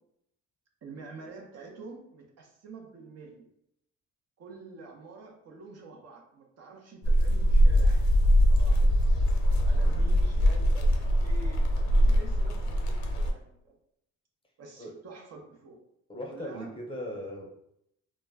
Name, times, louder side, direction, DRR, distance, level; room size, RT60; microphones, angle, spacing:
voice 1, 0.8-3.4 4.4-8.2 8.5-13.8 14.6-15.8 16.3-16.7, right 4 dB, 55° right, 1 dB, 0.7 m, -48 dB
sound 1, 7.0-13.3, equal, 70° left, 0.6 m, -22 dB
voice 2, 16.1-17.5, left 1 dB, 15° left, -1 dB, 0.6 m, -39 dB
2.2 x 2.1 x 3.4 m, 0.77 s
cardioid pair, 90°, 30 cm